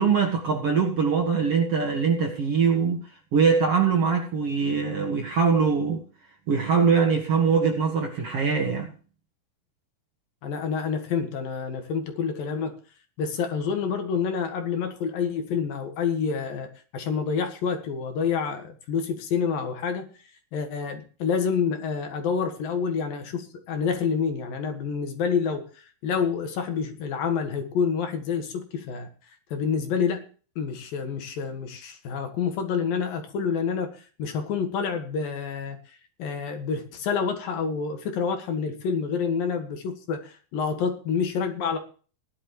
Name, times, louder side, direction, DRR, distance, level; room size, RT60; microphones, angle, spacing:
voice 1, 0.0-3.0 3.3-6.0 6.5-8.9, right 5 dB, 50° right, 1 dB, 2.0 m, -22 dB
voice 2, 10.4-12.7 13.2-20.1 20.5-25.6 26.0-29.1 29.5-30.2 30.6-35.8 36.2-41.8, left 6 dB, 65° left, 6 dB, 3.3 m, -28 dB
17.0 x 11.5 x 3.1 m, 0.39 s
omnidirectional pair, 4.5 m